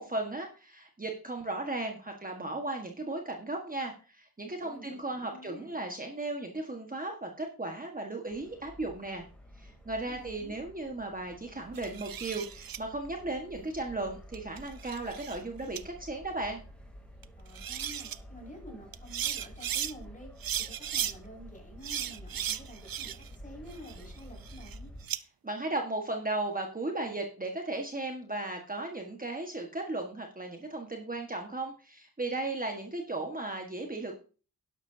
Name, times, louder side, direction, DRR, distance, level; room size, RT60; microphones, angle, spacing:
voice 1, 0.0-9.2 9.6-16.6 25.4-34.2, right 2 dB, 20° right, 2 dB, 1.5 m, -36 dB
voice 2, 4.6-5.8 9.9-10.6 17.4-20.3 20.6-23.1 23.4-24.9, equal, 20° left, -1 dB, 5.7 m, -49 dB
sound 1, 8.3-25.1, equal, 5° left, 3.0 m, -50 dB
sound 2, 11.7-12.8 14.3-15.4 15.7-15.8 17.2-17.3 17.5-18.2 18.9-19.9 20.4-21.1 21.8-23.3 23.7-25.2, right 10 dB, 65° right, 0.6 m, -36 dB
11.5 x 11.5 x 2.7 m, 0.36 s
wide cardioid pair, 80°, 38 cm